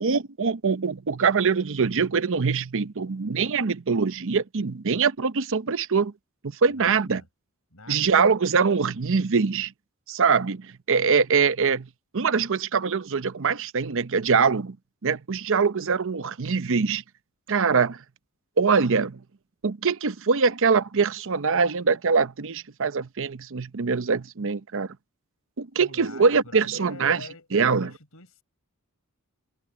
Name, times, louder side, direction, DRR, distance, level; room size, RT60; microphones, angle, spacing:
voice 1, 0.0-6.1 6.6-7.2 7.9-9.7 10.1-11.9 12.1-14.8 15.0-17.0 17.5-18.0 18.6-19.2 19.6-24.9 25.6-27.9, right 5 dB, 65° right, 0.7 m, -23 dB
voice 2, 6.7-7.3 7.7-8.2 25.8-28.4, left 3 dB, 75° left, 6.6 m, -44 dB
head